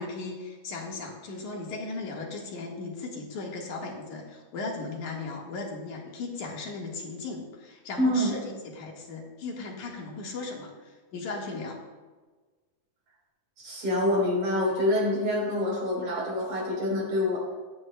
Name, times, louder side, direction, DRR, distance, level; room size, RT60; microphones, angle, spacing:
voice 1, 0.0-11.8, left 3 dB, 70° left, -1 dB, 2.9 m, -37 dB
voice 2, 8.0-8.3 13.6-17.4, left 1 dB, 55° right, -3 dB, 5.0 m, -26 dB
24.5 x 9.6 x 2.2 m, 1.3 s
omnidirectional pair, 3.7 m